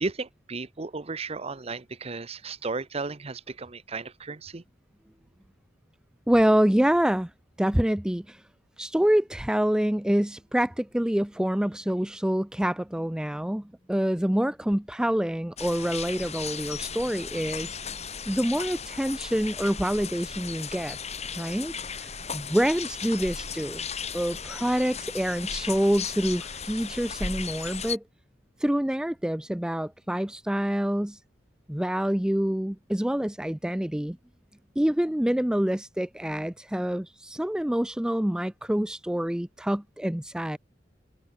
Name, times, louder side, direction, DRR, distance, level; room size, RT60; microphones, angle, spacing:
voice 1, 0.0-4.6, right 3 dB, 35° right, 0.8 m, -34 dB
voice 2, 6.3-7.3 7.6-8.4 8.8-17.7 18.3-21.0 21.4-23.8 24.1-28.0 28.6-31.2 31.7-34.2 34.8-40.6, equal, 5° right, 0.4 m, -26 dB
sound 1, 15.6-28.0, left 6 dB, 35° left, 4.6 m, -36 dB
head